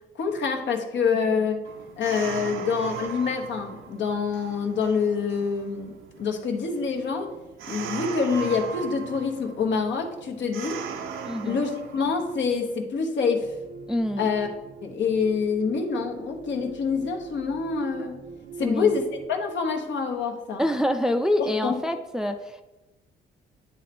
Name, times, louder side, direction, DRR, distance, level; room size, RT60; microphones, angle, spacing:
voice 1, 0.1-1.6 2.0-5.9 6.2-7.3 7.7-10.8 11.4-13.5 14.2-14.5 14.8-18.2 18.6-20.6 21.4-21.8, left 5 dB, 65° left, 2 dB, 1.1 m, -26 dB
sound 1, 1.6-12.8, right 6 dB, 85° right, 0.6 m, -39 dB
voice 2, 11.2-11.6 13.9-14.3 18.6-18.9 20.6-22.6, left 1 dB, 5° right, 6 dB, 0.4 m, -26 dB
sound 2, 13.4-19.3, right 4 dB, 40° right, 0.6 m, -43 dB
9.3 x 3.2 x 4.3 m, 1.0 s
cardioid pair, 90°, 20 cm